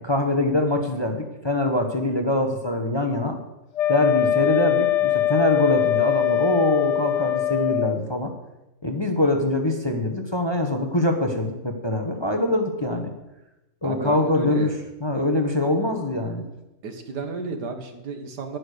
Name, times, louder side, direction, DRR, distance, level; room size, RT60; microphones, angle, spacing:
voice 1, 0.0-3.4 3.9-8.3 8.8-13.1 13.8-14.7 15.0-16.4, left 1 dB, 20° left, 4 dB, 1.0 m, -23 dB
Wind instrument woodwind instrument, 3.7-8.0, left 12 dB, 65° left, 0.7 m, -22 dB
voice 2, 13.8-14.8 16.8-18.6, right 4 dB, 85° right, 6 dB, 2.0 m, -32 dB
10.5 x 9.3 x 6.6 m, 0.97 s
omnidirectional pair, 1.7 m